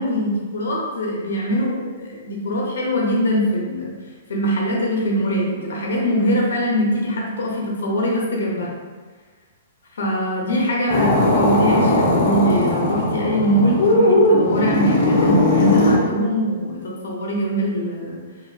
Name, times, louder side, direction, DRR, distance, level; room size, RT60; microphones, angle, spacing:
voice 1, 0.0-3.9 4.3-8.7 9.9-18.2, equal, 90° left, -2 dB, 1.0 m, -22 dB
sound 1, 10.9-16.0, left 1 dB, 40° left, 0.8 m, -18 dB
3.8 x 2.6 x 2.7 m, 1.4 s
hypercardioid pair, 165°, 0 cm